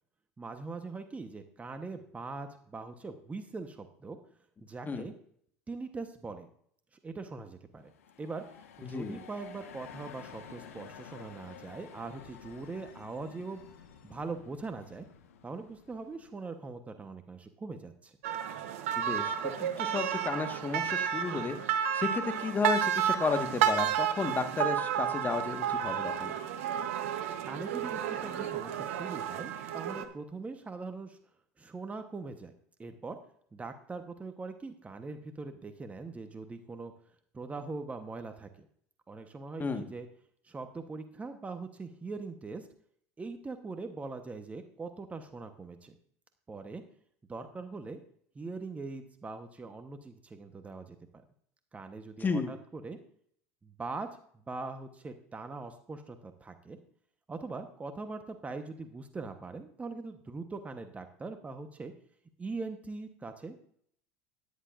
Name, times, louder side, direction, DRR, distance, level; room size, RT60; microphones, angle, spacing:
voice 1, 0.4-4.2 4.7-5.1 5.7-6.5 6.9-7.9 8.2-8.4 8.8-13.6 14.0-15.1 15.4-18.2 27.5-31.2 31.6-32.5 32.8-33.2 33.5-36.9 37.3-38.5 39.1-40.1 40.4-42.7 43.2-46.0 46.5-46.8 47.3-48.0 48.3-51.2 51.7-53.0 53.6-54.1 54.5-56.8 57.3-61.9 62.4-63.6, right 3 dB, 20° right, 8 dB, 1.1 m, -41 dB
sound 1, 7.8-16.5, left 8 dB, 90° left, 1.3 m, -51 dB
voice 2, 8.8-9.2 19.0-21.6 21.9-26.3 39.6-39.8 52.2-52.5, left 4 dB, 25° left, 6 dB, 1.5 m, -33 dB
sound 2, 18.2-30.0, right 9 dB, 75° right, 1.0 m, -31 dB
13.0 x 10.0 x 2.5 m, 0.62 s
hypercardioid pair, 85°, 7 cm